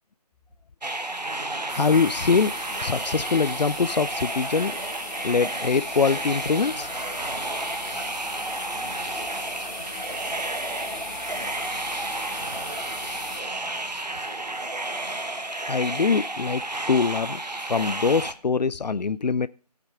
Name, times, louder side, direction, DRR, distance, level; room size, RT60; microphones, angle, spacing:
sound 1, 0.8-18.3, right 2 dB, 85° right, 1.2 m, -32 dB
sound 2, 1.1-15.5, right 1 dB, 45° right, 3.4 m, -54 dB
voice 1, 1.7-4.8 5.2-6.9 15.7-17.4 17.7-19.5, left 5 dB, 90° left, 0.4 m, -23 dB
sound 3, 1.7-13.4, left 2 dB, 5° left, 1.3 m, -38 dB
voice 2, 8.7-10.4 10.7-14.2, left 4 dB, 25° left, 1.8 m, -52 dB
15.0 x 5.8 x 4.8 m
figure-of-eight pair, 155°, 21 cm